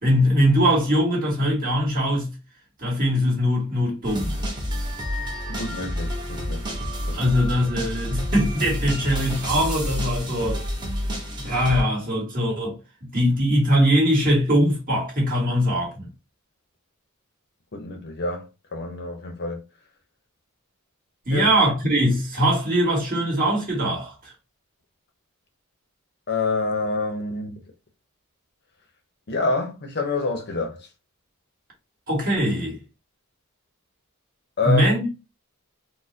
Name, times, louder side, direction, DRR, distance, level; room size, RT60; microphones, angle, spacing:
voice 1, 0.0-2.3 2.8-4.4 7.1-10.6 11.4-12.8 13.1-16.1 21.3-24.3 32.1-32.8 34.6-35.0, equal, 40° right, 1.7 m, -21 dB
sound 1, 4.0-11.8, equal, 20° right, 0.8 m, -29 dB
voice 2, 5.6-6.8 7.0-7.4 17.7-19.6 21.3-21.6 26.3-27.6 29.3-30.9 34.6-34.9, left 3 dB, 50° left, 0.7 m, -27 dB
4.1 x 2.1 x 2.7 m
head